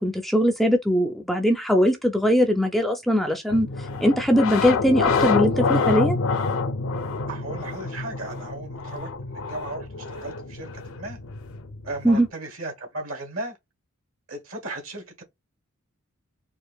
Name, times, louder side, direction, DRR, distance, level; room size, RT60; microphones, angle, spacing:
voice 1, 0.0-3.7 4.0-6.2 12.0-12.3, equal, ahead, 0.4 m, -21 dB
sound 1, 3.5-12.3, left 4 dB, 65° left, 0.5 m, -27 dB
voice 2, 7.3-11.2 11.8-13.6 14.3-15.2, right 2 dB, 70° right, 1.4 m, -36 dB
4.5 x 2.5 x 2.3 m
head